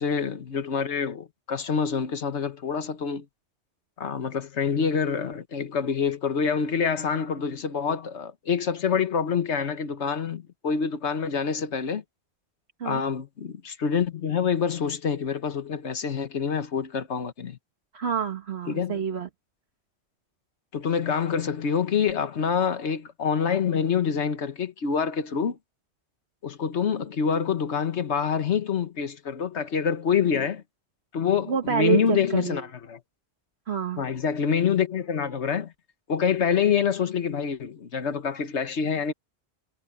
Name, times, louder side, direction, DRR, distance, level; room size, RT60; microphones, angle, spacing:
voice 1, 0.0-3.2 4.0-12.0 12.8-17.6 18.7-18.9 20.7-25.6 26.4-30.6 31.1-33.0 34.0-35.7 36.1-39.1, left 6 dB, 85° left, 1.5 m, -26 dB
voice 2, 17.9-19.3 31.5-32.6 33.7-34.0, right 8 dB, 65° right, 1.5 m, -27 dB
omnidirectional pair, 1.1 m